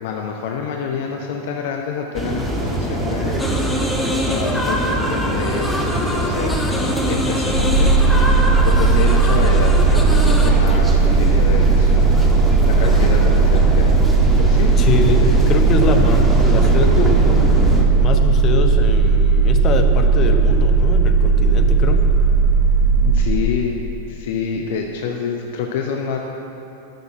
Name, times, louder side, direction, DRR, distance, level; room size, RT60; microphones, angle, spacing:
voice 1, 0.0-3.6 4.2-7.9 8.3-12.1 12.6-14.0 14.3-15.4 23.0-23.8 24.1-26.2, left 6 dB, 50° left, 2 dB, 0.8 m, -27 dB
sound 1, 2.1-17.8, right 1 dB, 10° right, 1.6 m, -23 dB
sound 2, 3.4-10.5, equal, 5° left, 1.3 m, -25 dB
sound 3, 7.5-23.2, right 4 dB, 75° left, 2.0 m, -15 dB
voice 2, 14.8-17.6 18.0-22.0, left 4 dB, 30° left, 4 dB, 1.1 m, -23 dB
11.5 x 6.6 x 8.9 m, 3.0 s
figure-of-eight pair, 90°, 0 cm